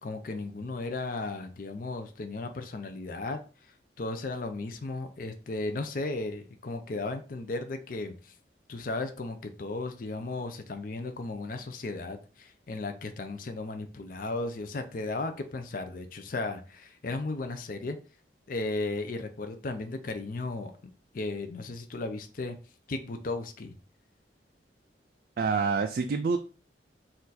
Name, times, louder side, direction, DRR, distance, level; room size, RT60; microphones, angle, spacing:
voice 1, 0.0-3.4 4.0-8.3 8.7-18.0 18.5-20.7 21.1-22.6 22.9-23.7, left 2 dB, 50° left, 0.5 m, -35 dB
voice 2, 25.4-26.4, right 5 dB, 50° right, 0.3 m, -27 dB
4.3 x 2.5 x 4.0 m
head